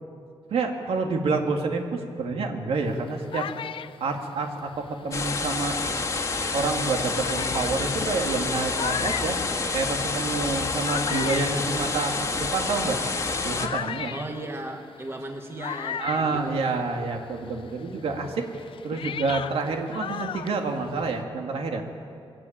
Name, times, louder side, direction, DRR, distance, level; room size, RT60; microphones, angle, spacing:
voice 1, 0.5-3.5 4.0-5.8 6.5-9.4 9.7-13.0 13.4-14.1 16.0-18.5 18.8-21.8, right 3 dB, 85° right, 3 dB, 2.3 m, -28 dB
sound 1, 2.8-5.9 6.5-6.6 7.1-17.2 17.5-21.2, left 9 dB, 65° left, 0.5 m, -37 dB
sound 2, 5.1-13.7, left 3 dB, 35° left, 1.6 m, -28 dB
voice 2, 14.1-17.1, right 2 dB, 25° right, 4 dB, 1.5 m, -37 dB
22.5 x 16.5 x 8.9 m, 2.4 s
wide cardioid pair, 170°, 10 cm